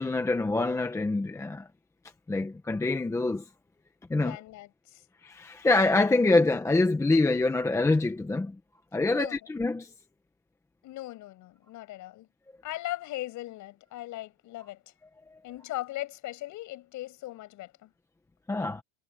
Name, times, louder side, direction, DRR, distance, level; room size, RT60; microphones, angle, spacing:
voice 1, 0.0-1.7 2.3-3.5 4.1-4.4 5.2-8.6 8.9-9.9 15.3-15.4 18.5-18.8, left 2 dB, 5° left, 1.1 m, -25 dB
voice 2, 4.2-5.0 9.1-9.4 10.8-12.3 12.6-14.8 15.4-17.9, left 16 dB, 40° left, 6.7 m, -39 dB
supercardioid pair, 160°, 46 cm